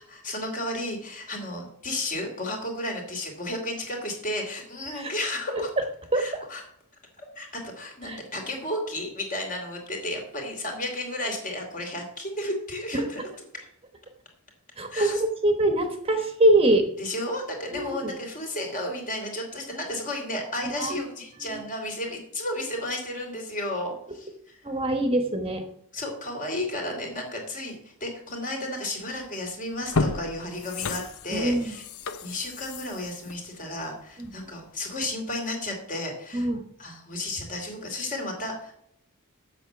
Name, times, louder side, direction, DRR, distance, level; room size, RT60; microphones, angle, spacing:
voice 1, 0.1-5.7 6.1-6.6 7.2-13.2 14.9-15.2 17.0-24.6 25.9-31.8 32.2-36.5 36.8-38.7, left 1 dB, 40° left, 2 dB, 3.1 m, -33 dB
voice 2, 6.1-6.4 8.0-8.2 12.9-13.0 14.8-16.8 17.7-18.1 20.6-21.0 21.4-21.6 24.6-25.6 31.3-31.7 34.2-34.3 36.3-36.6, right 1 dB, 25° right, 5 dB, 1.1 m, -24 dB
sound 1, 29.1-29.3 29.8-34.5 34.9-35.0, left 3 dB, 80° left, 0.8 m, -32 dB
8.0 x 6.8 x 7.0 m, 0.70 s
head